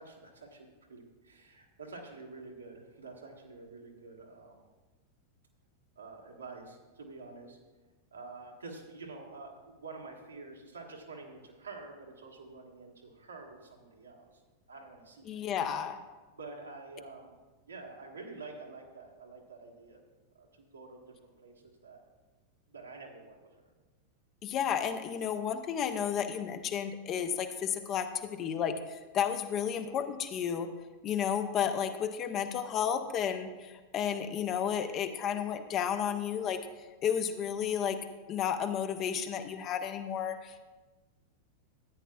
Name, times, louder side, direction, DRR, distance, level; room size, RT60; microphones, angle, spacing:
voice 1, 0.0-4.7 5.9-7.6 8.1-14.4 14.7-15.4 16.3-17.4 17.7-20.0 20.3-20.5 20.7-22.0 22.7-23.3 31.2-31.3, right 3 dB, 75° right, 0 dB, 1.5 m, -48 dB
voice 2, 15.3-16.0 24.4-30.7 31.0-36.6 37.0-38.0 38.3-40.6, left 8 dB, 35° left, 9 dB, 0.6 m, -32 dB
14.0 x 9.2 x 2.3 m, 1.2 s
figure-of-eight pair, 90°, 0 cm